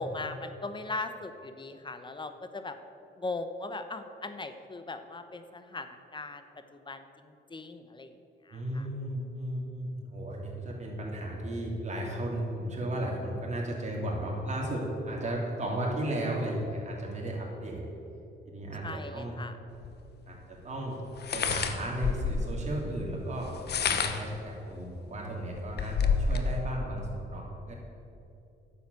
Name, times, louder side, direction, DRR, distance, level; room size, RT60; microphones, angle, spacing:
voice 1, 0.0-2.8 3.2-6.4 6.9-8.1 8.5-8.9 18.8-19.6, left 2 dB, 25° left, 9 dB, 0.9 m, -39 dB
voice 2, 8.5-17.8 18.4-19.3 20.3-21.0 21.3-27.7, right 1 dB, 35° right, -2 dB, 3.3 m, -34 dB
sound 1, 19.8-19.9 21.2-22.5 23.5-24.4 25.0-25.1 25.4-26.5, left 6 dB, 55° left, 1.0 m, -28 dB
10.5 x 7.3 x 8.2 m, 2.8 s
cardioid pair, 90°, 20 cm